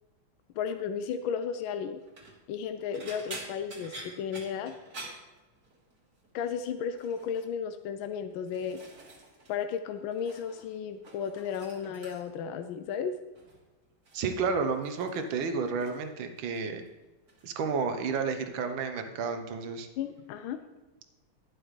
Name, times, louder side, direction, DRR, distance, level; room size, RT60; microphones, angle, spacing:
voice 1, 0.6-2.0 2.5-4.7 6.3-8.8 9.5-13.1 20.0-20.6, left 7 dB, 80° left, 9 dB, 1.4 m, -34 dB
sound 1, 2.0-2.4 2.9-6.0 6.2-6.6 6.9-7.5 8.1-9.6 9.8-10.7 10.9-12.5 13.3-13.6 14.0-16.1 16.4-16.9 17.3-17.5 18.8-18.9, right 2 dB, 50° right, 2.1 m, -48 dB
voice 2, 14.1-16.8 17.4-19.9, right 5 dB, 70° right, 7 dB, 1.6 m, -31 dB
11.0 x 10.5 x 3.2 m, 1.1 s
omnidirectional pair, 2.2 m